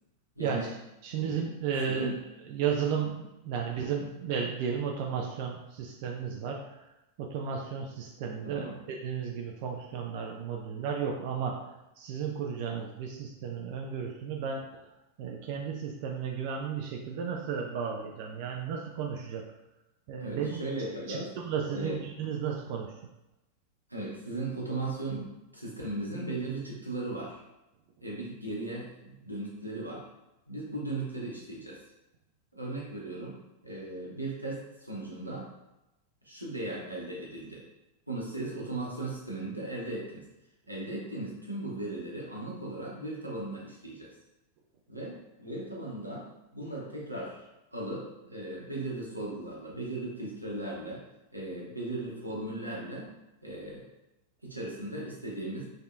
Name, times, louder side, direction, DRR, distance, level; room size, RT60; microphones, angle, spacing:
voice 1, 0.4-0.7 1.1-1.4 1.8-2.2 8.4-8.8 20.2-21.3 21.7-22.1 23.9-27.4 28.0-30.0 30.5-31.8 32.5-35.5 36.2-37.6 38.1-40.3 40.7-44.1 44.9-51.0 51.3-53.1 53.4-53.9 54.4-55.7, right 2 dB, 85° right, -4 dB, 0.8 m, -37 dB
voice 2, 1.0-2.1 2.5-6.9 7.2-14.7 15.2-19.4 20.1-20.6 21.1-22.9, right 7 dB, 45° right, 1 dB, 0.3 m, -34 dB
3.3 x 2.7 x 2.2 m, 0.95 s
figure-of-eight pair, 90°, 0 cm